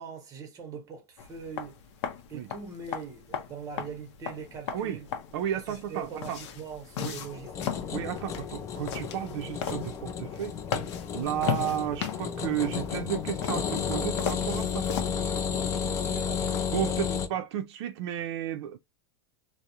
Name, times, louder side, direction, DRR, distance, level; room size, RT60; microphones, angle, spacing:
voice 1, 0.0-1.8 2.3-5.1 5.5-7.9 15.5-17.4, right 5 dB, 20° right, 0.8 m, -42 dB
sound 1, 1.2-15.1, left 8 dB, 65° left, 0.6 m, -37 dB
voice 2, 5.3-6.4 7.0-7.2 7.9-10.6 11.1-14.9 16.7-18.8, right 10 dB, 60° right, 0.4 m, -33 dB
sound 2, 7.1-17.3, left 7 dB, 20° left, 0.3 m, -32 dB
2.3 x 2.0 x 2.8 m
supercardioid pair, 145°, 16 cm